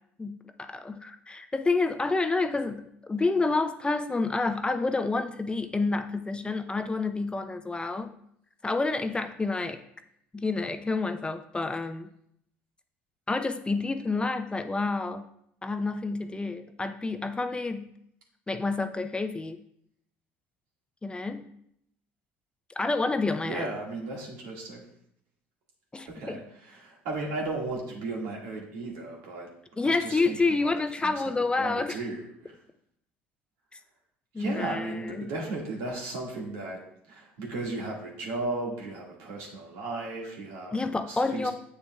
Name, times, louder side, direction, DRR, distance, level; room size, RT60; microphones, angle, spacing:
voice 1, 0.2-8.1 8.6-9.8 10.3-12.1 13.3-15.2 15.6-17.9 18.5-19.6 21.0-21.5 22.8-23.7 25.9-26.4 29.8-32.0 34.3-35.3 40.7-41.5, left 3 dB, 15° left, 8 dB, 0.5 m, -29 dB
voice 2, 23.4-24.8 26.1-29.5 29.8-30.7 31.0-31.3 31.6-32.6 34.4-36.8 37.1-40.8 41.1-41.5, right 2 dB, 75° right, -2 dB, 1.8 m, -35 dB
7.8 x 6.8 x 2.3 m, 0.73 s
hypercardioid pair, 75°, 6 cm